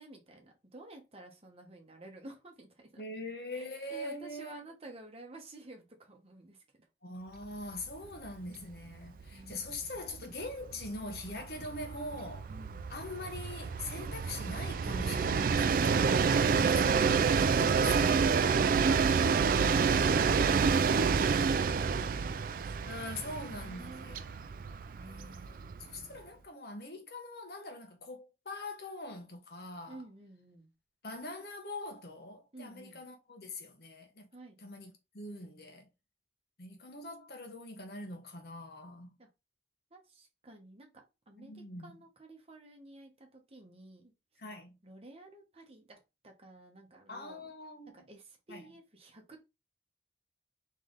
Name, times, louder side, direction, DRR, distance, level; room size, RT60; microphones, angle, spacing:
voice 1, 0.0-3.0 3.5-6.9 9.3-9.7 10.7-10.8 12.5-12.9 18.7-24.1 24.9-26.2 29.9-30.7 32.5-33.0 34.3-34.6 39.2-39.3 39.9-44.1 44.8-46.0 46.2-47.5 47.9-49.4, right 2 dB, 35° right, 1.1 m, -52 dB
voice 2, 3.0-4.6 7.0-12.5 12.9-18.6 22.8-24.3 25.1-30.0 31.0-34.3 34.6-35.9 36.6-39.1 41.4-42.0 44.4-44.8 47.1-48.0 48.5-48.7, left 2 dB, 60° left, 1.1 m, -43 dB
Train, 7.8-7.9 8.3-8.4 8.6-26.0, right 5 dB, 50° right, 0.3 m, -28 dB
3.7 x 3.2 x 3.9 m
head